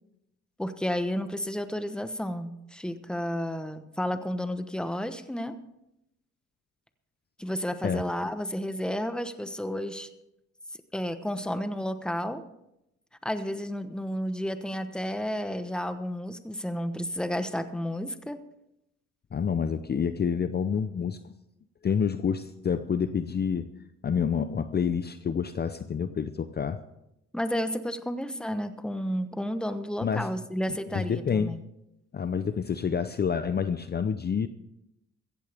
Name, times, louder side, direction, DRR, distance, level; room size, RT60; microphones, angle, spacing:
voice 1, 0.6-5.6 7.4-10.1 10.9-12.4 13.2-18.4 27.3-31.6, equal, 5° left, 10 dB, 1.1 m, -32 dB
voice 2, 19.3-21.3 21.8-23.7 24.0-26.8 30.0-30.3 30.7-31.6 32.1-34.5, left 7 dB, 35° left, 11 dB, 0.6 m, -28 dB
15.5 x 15.0 x 3.5 m, 0.84 s
cardioid pair, 90°, 30 cm